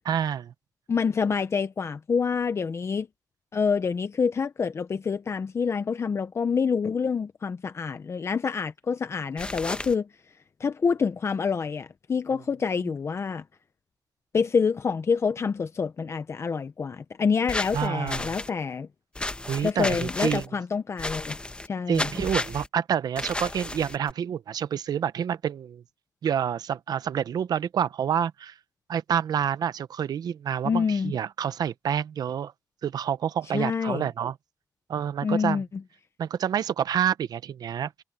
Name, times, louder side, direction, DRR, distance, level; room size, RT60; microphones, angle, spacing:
voice 1, 0.1-0.5 17.7-18.3 19.5-20.5 21.9-25.8 26.2-28.5 28.9-32.5 32.8-34.4 34.9-35.6 36.2-37.9, right 8 dB, 80° right, 0.8 m, -28 dB
voice 2, 0.9-3.1 3.5-10.1 10.6-13.4 14.3-18.9 19.6-21.4 21.7-22.1 30.6-31.1 33.5-34.1 35.2-35.7, left 5 dB, 45° left, 0.8 m, -27 dB
sound 1, 9.4-9.9 17.5-18.5 19.2-20.5 21.0-21.7 21.9-22.7 23.2-24.1, left 2 dB, 15° left, 1.1 m, -33 dB
wide cardioid pair, 125°, 7 cm